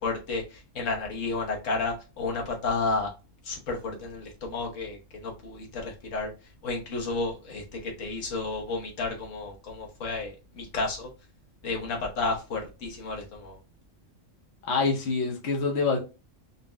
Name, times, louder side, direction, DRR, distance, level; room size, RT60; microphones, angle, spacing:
voice 1, 0.0-3.1 3.4-6.3 6.6-11.1 11.6-13.6, left 3 dB, 80° left, 0 dB, 1.4 m, -32 dB
voice 2, 14.7-16.0, left 4 dB, 60° left, 1 dB, 1.1 m, -26 dB
4.1 x 2.1 x 3.4 m, 0.29 s
omnidirectional pair, 1.3 m